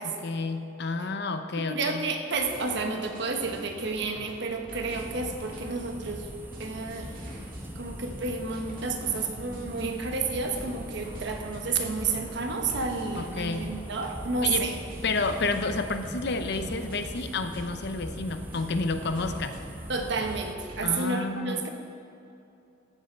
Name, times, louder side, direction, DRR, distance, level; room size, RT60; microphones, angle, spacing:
voice 1, 0.0-2.0 13.2-13.7 14.4-14.7 15.0-19.6 20.8-21.7, left 3 dB, 60° left, 8 dB, 0.8 m, -30 dB
voice 2, 1.6-6.3 6.6-7.1 7.7-14.7 19.9-21.7, right 4 dB, 65° right, 4 dB, 1.3 m, -30 dB
sound 1, 2.3-21.1, equal, 50° right, 2.0 m, -45 dB
sound 2, 4.9-20.6, right 1 dB, 10° right, 0.6 m, -41 dB
14.0 x 8.2 x 4.6 m, 2.7 s
head